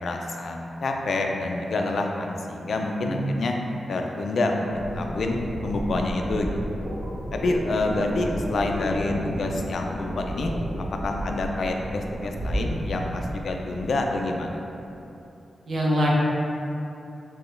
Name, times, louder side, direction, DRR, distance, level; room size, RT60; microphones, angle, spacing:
voice 1, 0.0-3.6 3.9-5.4 5.6-6.9 7.3-10.5 11.0-14.6, left 2 dB, 65° left, 2 dB, 0.3 m, -27 dB
sound 1, 4.6-14.0, equal, 35° right, 1.1 m, -32 dB
voice 2, 15.7-16.1, equal, 50° right, -4 dB, 0.6 m, -24 dB
4.0 x 2.2 x 3.3 m, 2.8 s
wide cardioid pair, 125°, 0 cm